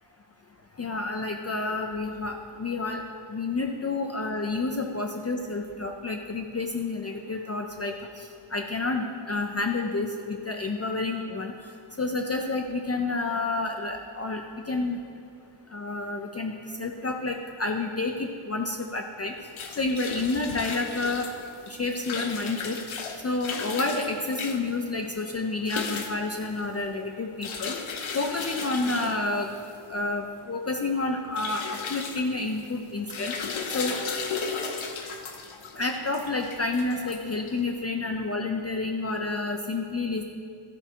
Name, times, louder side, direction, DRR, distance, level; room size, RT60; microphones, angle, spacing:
voice 1, 0.8-3.0 3.3-11.5 12.0-14.4 14.7-15.0 15.7-16.5 16.8-19.3 19.8-21.3 21.7-22.8 23.2-27.7 28.1-29.5 29.9-33.3 33.7-34.2 35.7-40.2, left 3 dB, 35° left, 3 dB, 0.4 m, -29 dB
sound 1, 19.3-37.8, left 5 dB, 75° left, 0.8 m, -36 dB
13.0 x 4.4 x 4.4 m, 2.4 s
wide cardioid pair, 155°, 48 cm